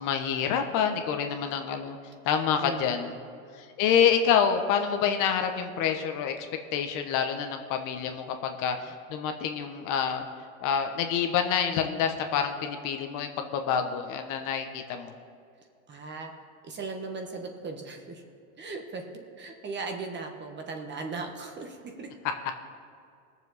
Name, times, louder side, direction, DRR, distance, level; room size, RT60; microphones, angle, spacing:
voice 1, 0.0-2.0 2.2-3.1 3.5-6.5 6.7-10.2 10.6-15.1, left 7 dB, 50° left, 6 dB, 1.1 m, -27 dB
voice 2, 2.6-3.1 15.9-16.3 16.6-18.2 18.6-22.1, right 3 dB, 25° right, 4 dB, 1.4 m, -38 dB
19.5 x 7.2 x 4.1 m, 2.4 s
supercardioid pair, 115°, 41 cm